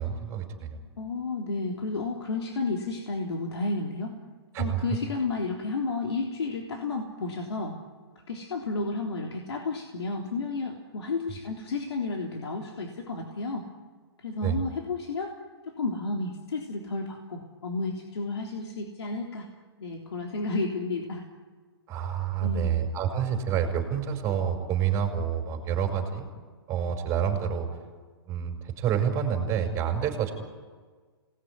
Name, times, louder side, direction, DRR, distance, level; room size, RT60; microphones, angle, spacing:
voice 1, 0.0-0.8 4.5-4.8 14.4-14.6 21.9-26.3 26.7-27.7 28.3-30.3, right 8 dB, 20° right, 4 dB, 5.2 m, -28 dB
voice 2, 1.0-4.2 4.6-7.8 8.3-13.7 14.2-15.3 15.6-19.5 19.8-21.2 22.4-22.8, left 3 dB, 90° left, 1 dB, 3.5 m, -32 dB
27.5 x 19.5 x 9.8 m, 1.5 s
hypercardioid pair, 155°, 14 cm